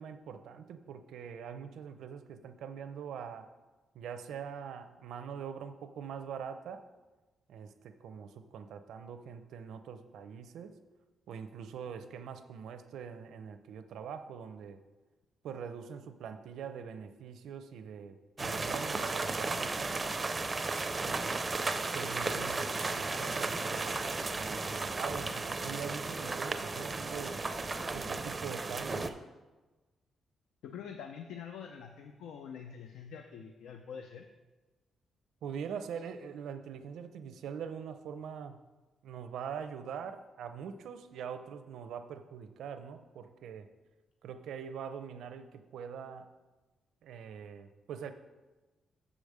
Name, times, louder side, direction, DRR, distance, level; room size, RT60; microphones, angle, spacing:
voice 1, 0.0-3.5 3.9-6.8 7.5-10.8 11.3-14.8 15.4-19.9 21.0-27.4 27.9-29.2 35.4-38.6 39.0-43.7 44.2-46.3 47.0-48.1, right 7 dB, 85° right, 10 dB, 0.6 m, -43 dB
sound 1, 18.4-29.1, right 3 dB, 25° right, 0.4 m, -34 dB
voice 2, 30.6-34.3, left 7 dB, 90° left, 5 dB, 0.5 m, -45 dB
7.0 x 5.1 x 6.5 m, 1.2 s
cardioid pair, 140°, 0 cm